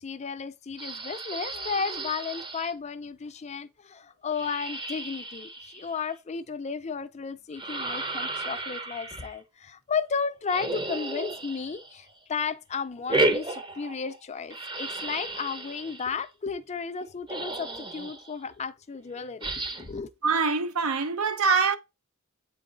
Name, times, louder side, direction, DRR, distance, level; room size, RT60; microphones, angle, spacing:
voice 1, 0.0-20.1, left 5 dB, 30° left, 0.4 m, -34 dB
sound 1, 0.8-2.7 4.3-6.1 7.5-9.3 10.5-12.1 13.0-14.2 14.5-16.1 17.0-17.1 17.3-18.3 19.4-20.0, right 2 dB, 20° right, 0.7 m, -33 dB
voice 2, 20.2-21.8, right 4 dB, 70° right, 0.7 m, -24 dB
8.2 x 3.9 x 3.9 m
head